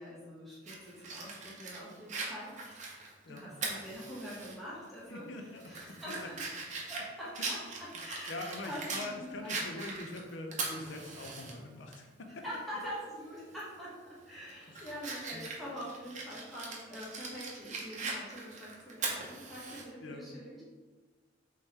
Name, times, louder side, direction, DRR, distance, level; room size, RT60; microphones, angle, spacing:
voice 1, 0.0-6.4 6.8-9.9 12.4-20.6, equal, ahead, -9 dB, 1.4 m, -45 dB
Fire, 0.7-4.5 4.9-5.0 5.5-9.1 9.5-11.5 11.9-12.0 13.5-13.8 14.2-19.8, right 3 dB, 40° right, 0.7 m, -40 dB
voice 2, 5.1-6.3 7.4-7.5 7.9-12.1 12.4-12.5 14.7-14.9 15.3-15.4 20.0-20.3, left 2 dB, 90° left, 3 dB, 0.6 m, -43 dB
3.6 x 3.3 x 4.1 m, 1.4 s
head